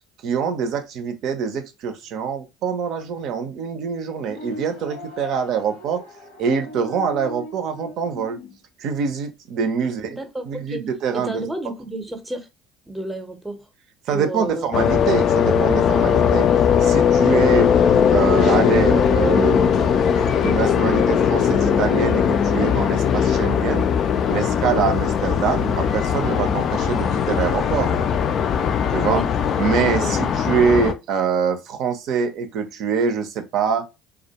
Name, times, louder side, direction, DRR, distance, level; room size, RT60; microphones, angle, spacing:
voice 1, 0.2-6.0 6.4-8.4 8.8-10.2 10.5-11.4 14.1-16.5 16.8-17.7 18.1-19.8 20.4-23.9 24.3-27.9 28.9-29.2 29.6-33.8, right 6 dB, 65° right, 0.5 m, -24 dB
sound 1, 4.2-8.6, left 1 dB, 85° left, 1.0 m, -38 dB
voice 2, 9.8-10.8 11.1-12.5 12.9-13.7 14.1-14.7 29.0-29.3 30.0-30.2, right 2 dB, 10° right, 0.7 m, -31 dB
sound 2, 14.7-30.9, left 7 dB, 50° left, 0.3 m, -19 dB
2.3 x 2.1 x 2.8 m
hypercardioid pair, 75°, 0 cm